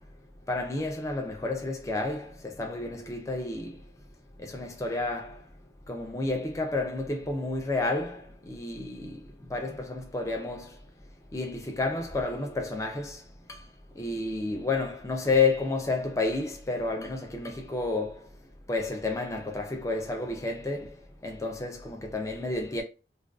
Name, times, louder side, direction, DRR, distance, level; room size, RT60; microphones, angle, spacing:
voice 1, 0.5-3.7 4.4-5.3 5.9-8.2 8.5-9.2 9.5-10.7 11.3-13.2 14.0-18.1 18.7-20.9 21.2-22.8, left 3 dB, 15° left, 0.3 m, -30 dB
2.4 x 2.2 x 2.3 m
head